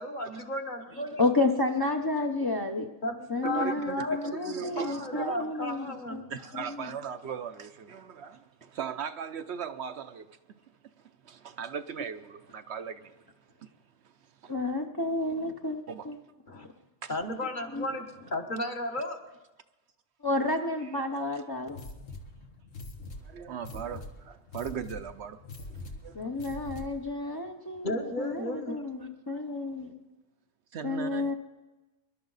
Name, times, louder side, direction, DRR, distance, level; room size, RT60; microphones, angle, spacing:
voice 1, 0.0-1.3 3.0-6.3 16.5-16.7 17.1-19.3 27.8-28.8, left 1 dB, 40° left, 1.5 m, -34 dB
voice 2, 1.2-2.9 3.3-6.2 6.5-6.9 14.5-16.2 17.7-17.9 20.2-21.8 26.1-29.9 30.8-31.3, left 2 dB, 20° left, 0.7 m, -31 dB
voice 3, 3.4-5.4 6.3-10.3 11.3-13.1 15.9-16.1 17.0-17.1 17.9-18.0 23.3-25.4 26.0-26.6 30.7-31.3, right 7 dB, 65° right, 0.9 m, -38 dB
sound 1, 21.7-27.1, left 2 dB, 85° left, 1.8 m, -44 dB
25.0 x 11.5 x 4.0 m
omnidirectional pair, 1.3 m